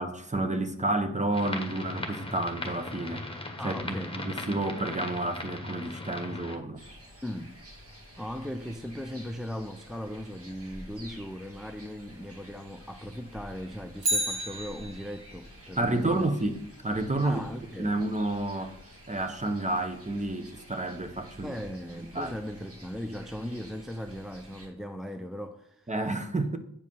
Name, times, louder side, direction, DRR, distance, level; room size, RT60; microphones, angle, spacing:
voice 1, 0.0-3.2 3.6-6.8 15.8-16.6 16.8-17.5 17.8-18.8 19.1-21.6 22.1-22.4 25.9-26.6, right 2 dB, 20° right, 0.9 m, -30 dB
sound 1, 1.3-6.6, left 2 dB, 15° left, 1.4 m, -38 dB
voice 2, 3.6-4.1 7.2-7.6 8.2-16.3 17.2-17.9 21.4-25.9, equal, ahead, 0.5 m, -38 dB
sound 2, 6.8-24.7, equal, 40° right, 2.4 m, -50 dB
Bicycle, 14.0-15.4 23.7-23.8, right 1 dB, 85° right, 1.3 m, -31 dB
8.6 x 4.8 x 5.4 m
wide cardioid pair, 70°, 35 cm